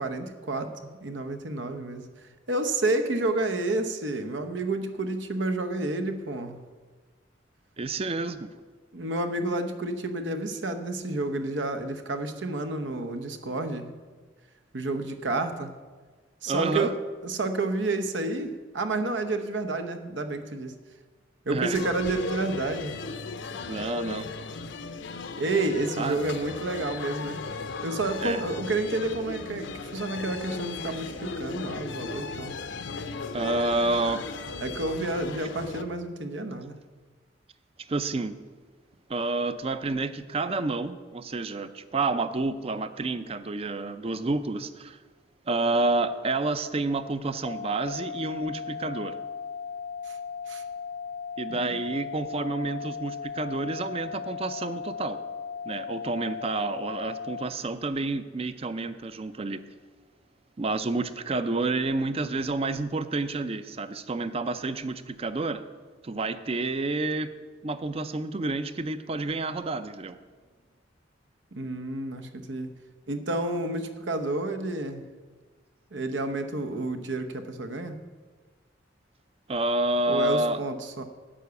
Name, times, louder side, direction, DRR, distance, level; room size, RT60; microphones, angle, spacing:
voice 1, 0.0-2.1 2.5-6.6 8.9-13.9 14.7-15.7 16.4-17.0 17.2-20.7 21.5-23.0 25.4-27.4 27.8-32.6 34.6-36.7 50.0-50.2 50.5-50.6 51.5-51.8 71.5-72.7 73.1-75.0 75.9-78.0 80.1-81.0, right 2 dB, 80° right, 8 dB, 0.9 m, -30 dB
voice 2, 7.8-8.5 16.5-16.9 21.5-21.8 23.7-24.3 26.0-26.2 28.2-28.4 33.3-34.3 37.9-38.4 39.1-45.0 45.5-49.2 51.4-55.2 55.7-59.6 60.6-65.6 66.0-67.3 67.6-70.2 79.5-80.6, right 2 dB, 30° right, 12 dB, 0.5 m, -29 dB
sound 1, 21.7-35.8, left 4 dB, 75° left, 0.7 m, -36 dB
sound 2, 47.4-57.4, left 6 dB, 35° left, 0.3 m, -37 dB
10.0 x 5.8 x 8.1 m, 1.4 s
head